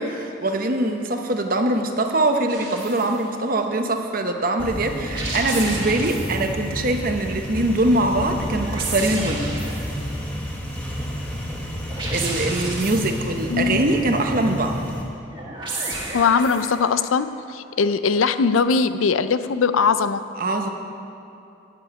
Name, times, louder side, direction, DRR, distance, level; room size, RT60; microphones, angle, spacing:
voice 1, 0.0-9.5 12.1-14.7 20.4-20.7, right 2 dB, 45° right, 5 dB, 0.8 m, -23 dB
sound 1, 2.5-3.2 5.0-6.6 8.4-10.1 11.8-13.4 15.3-16.9, right 2 dB, 25° right, 1.5 m, -32 dB
sound 2, 4.6-15.0, equal, 10° left, 1.5 m, -30 dB
voice 2, 16.1-20.2, left 5 dB, 85° left, 13 dB, 0.5 m, -20 dB
9.0 x 7.0 x 8.7 m, 2.8 s
head